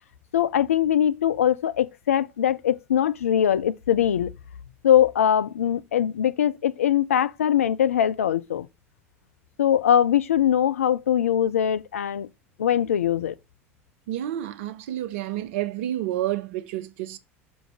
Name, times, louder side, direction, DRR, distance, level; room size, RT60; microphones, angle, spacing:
voice 1, 0.3-4.3 4.8-8.7 9.6-12.3 12.6-13.3, left 10 dB, 75° left, 0.4 m, -22 dB
voice 2, 14.1-17.2, right 13 dB, 65° right, 0.7 m, -29 dB
6.2 x 5.1 x 3.5 m
figure-of-eight pair, 70°, 8 cm